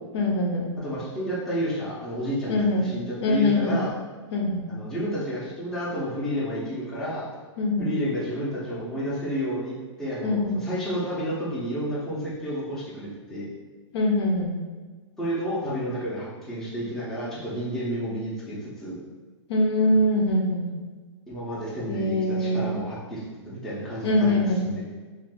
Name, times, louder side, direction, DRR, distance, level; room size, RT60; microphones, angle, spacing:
voice 1, 0.1-0.7 2.5-2.8 3.2-3.8 4.3-4.6 7.6-7.9 10.2-10.6 13.9-14.6 19.5-20.6 21.9-22.7 24.0-24.6, left 1 dB, 55° left, 0 dB, 0.6 m, -23 dB
voice 2, 0.8-3.9 4.7-7.3 7.8-13.5 15.2-19.0 21.3-24.9, equal, 5° left, -9 dB, 0.6 m, -31 dB
2.5 x 2.5 x 3.5 m, 1.4 s
hypercardioid pair, 150°, 16 cm